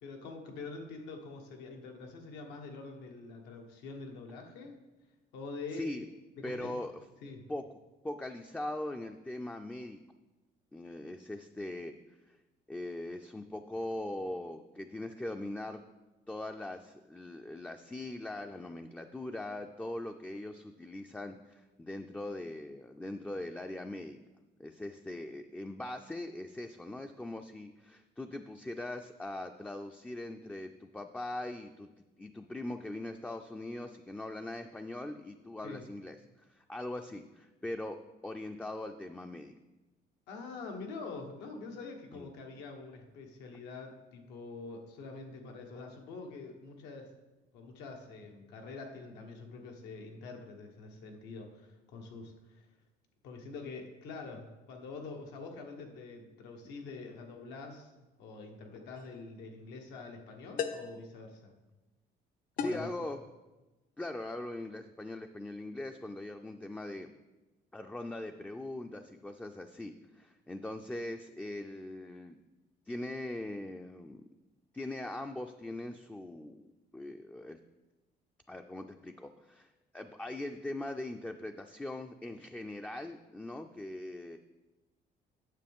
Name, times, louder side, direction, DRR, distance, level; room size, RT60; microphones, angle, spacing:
voice 1, 0.0-4.8 5.3-5.9 6.4-6.7 7.2-7.4 35.6-35.8 40.3-47.1 47.5-52.7 53.2-57.9 58.2-61.5 62.6-62.9, left 3 dB, 85° left, 3 dB, 1.2 m, -45 dB
voice 2, 5.7-6.1 6.4-6.9 7.5-7.6 8.0-10.0 10.7-11.9 12.3-12.4 12.7-15.8 16.3-24.2 24.6-31.9 32.2-38.0 38.2-39.6 42.1-42.3 62.6-63.2 64.0-67.1 67.7-72.4 72.9-74.2 74.7-77.6 78.5-84.4, left 1 dB, 10° left, 5 dB, 0.3 m, -41 dB
sound 1, 59.0-59.2 60.6-61.0 62.6-63.0, left 6 dB, 55° left, 0.6 m, -36 dB
9.2 x 7.0 x 3.6 m, 1.1 s
cardioid pair, 110°, 17 cm